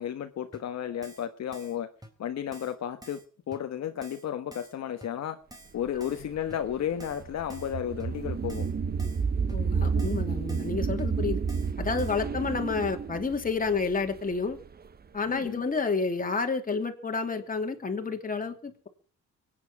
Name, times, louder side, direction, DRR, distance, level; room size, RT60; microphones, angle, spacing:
voice 1, 0.0-1.9 2.2-3.2 3.5-5.4 5.7-8.7 15.3-15.6, left 9 dB, 60° left, 7 dB, 1.4 m, -33 dB
Keyboard (musical), 0.5-0.6 1.0-1.3 1.5-1.8 2.0-2.1 2.5-2.7 3.0-3.2 3.5-3.6 4.0-4.2 4.5-4.7 5.0-5.1 5.5-5.7 6.0-6.2 6.5-6.6 7.0-7.2 7.5-7.7 8.0-8.1 8.5-8.7 9.0-9.2 9.5-9.6 10.0-10.2 10.5-10.7 11.0-11.1 11.5-11.7 12.0-12.2, right 1 dB, 10° right, 4.3 m, -49 dB
sound 1, 5.9-14.9, right 5 dB, 30° right, 1.0 m, -31 dB
voice 2, 9.5-11.4 11.8-14.6 15.1-18.9, left 4 dB, 30° left, 4 dB, 2.9 m, -30 dB
23.0 x 9.6 x 6.0 m, 0.41 s
cardioid pair, 90°, 30 cm